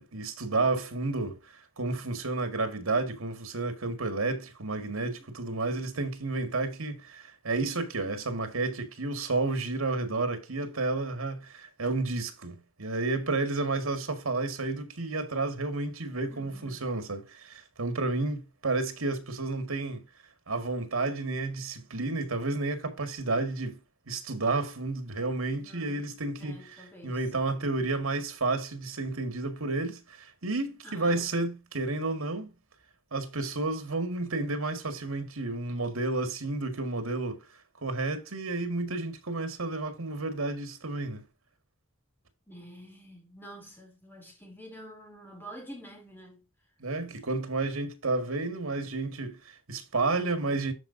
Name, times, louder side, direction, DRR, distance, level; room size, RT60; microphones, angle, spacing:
voice 1, 0.0-20.1 20.5-23.8 24.1-26.6 27.0-32.5 33.1-37.4 37.8-41.2 46.8-50.7, right 3 dB, 85° right, 2.0 m, -31 dB
voice 2, 16.3-16.9 25.5-27.2 30.8-31.3 42.5-46.5, right 1 dB, 10° left, 3.3 m, -48 dB
13.5 x 4.9 x 2.7 m
head